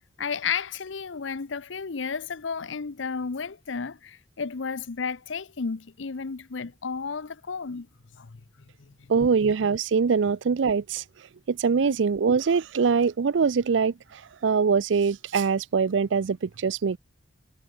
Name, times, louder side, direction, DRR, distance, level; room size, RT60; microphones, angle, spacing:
voice 1, 0.2-7.9 8.2-8.4 8.8-8.9 11.8-11.9, left 5 dB, 75° left, 0.7 m, -32 dB
voice 2, 9.1-11.0 11.5-13.9 14.4-17.0, right 5 dB, 70° right, 0.5 m, -23 dB
head